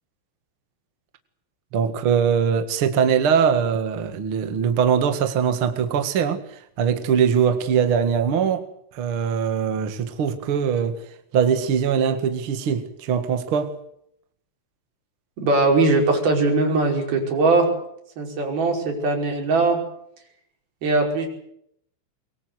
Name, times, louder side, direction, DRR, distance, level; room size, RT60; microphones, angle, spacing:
voice 1, 1.7-8.6 8.9-11.0 11.3-13.7, right 7 dB, 85° right, 8 dB, 1.1 m, -22 dB
voice 2, 15.4-17.7 18.2-19.8 20.8-21.3, right 3 dB, 50° right, 1 dB, 6.9 m, -20 dB
23.5 x 23.0 x 8.0 m, 0.73 s
omnidirectional pair, 5.6 m